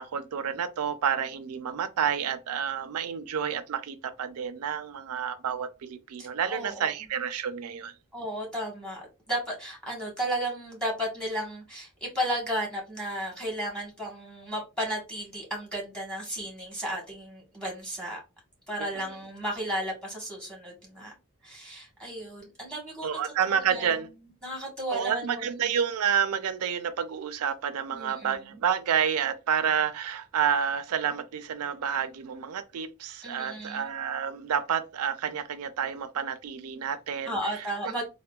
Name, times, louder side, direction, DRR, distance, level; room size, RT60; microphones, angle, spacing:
voice 1, 0.0-7.9 18.8-19.1 23.0-24.1 24.9-37.6, right 8 dB, 85° right, 0.4 m, -29 dB
voice 2, 6.2-6.9 8.1-18.2 18.7-21.1 21.4-24.0 24.4-25.5 27.9-28.4 33.2-33.9 37.2-38.0, equal, 5° left, 1.1 m, -34 dB
3.6 x 2.1 x 2.3 m
head